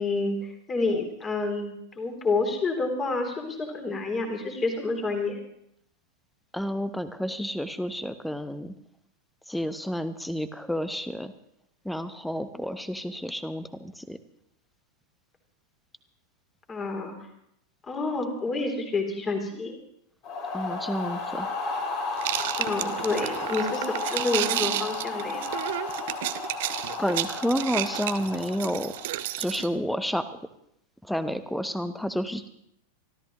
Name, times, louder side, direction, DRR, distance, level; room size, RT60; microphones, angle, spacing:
voice 1, 0.0-5.4 16.7-17.2 17.9-19.8 22.6-25.5, left 3 dB, 20° left, 4 dB, 3.0 m, -29 dB
voice 2, 6.5-8.7 9.5-11.3 11.8-14.2 20.5-21.6 27.0-28.9 29.4-30.3 31.0-32.5, equal, ahead, 12 dB, 0.9 m, -30 dB
sound 1, 20.2-29.3, left 3 dB, 45° left, 3.8 m, -33 dB
sound 2, 22.2-29.7, right 14 dB, 55° right, 0.7 m, -32 dB
25.5 x 13.5 x 3.0 m, 0.74 s
figure-of-eight pair, 90°, 0 cm